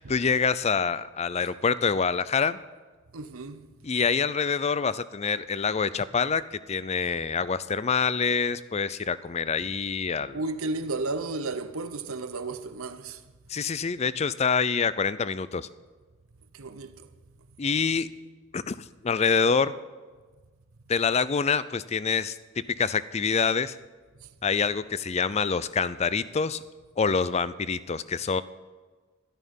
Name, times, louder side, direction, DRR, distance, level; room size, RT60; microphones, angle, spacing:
voice 1, 0.0-2.6 3.8-6.4 6.7-10.4 13.5-15.7 17.6-18.1 18.5-18.7 19.0-19.7 20.9-22.4 22.8-23.7 24.4-26.6 27.0-28.4, left 5 dB, 30° left, 0.4 m, -26 dB
voice 2, 3.1-3.7 10.3-13.2 16.5-17.1 24.2-24.3, right 3 dB, 75° right, 0.9 m, -33 dB
13.0 x 12.5 x 5.5 m
head